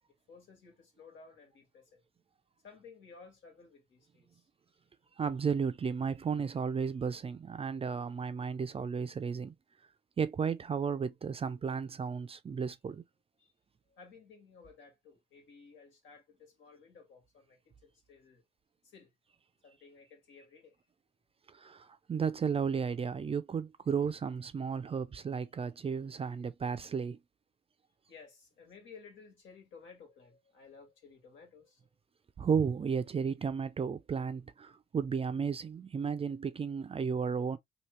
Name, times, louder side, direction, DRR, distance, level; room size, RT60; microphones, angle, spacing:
voice 1, 0.3-2.0 2.6-4.5 13.4-13.5 13.9-18.4 18.8-19.1 19.6-20.8 28.1-31.9, left 5 dB, 75° left, 1.8 m, -56 dB
voice 2, 5.2-9.5 10.2-13.0 21.5-27.2 32.4-37.6, right 6 dB, 30° right, 0.4 m, -33 dB
2.8 x 2.7 x 3.1 m
cardioid pair, 90°, 20 cm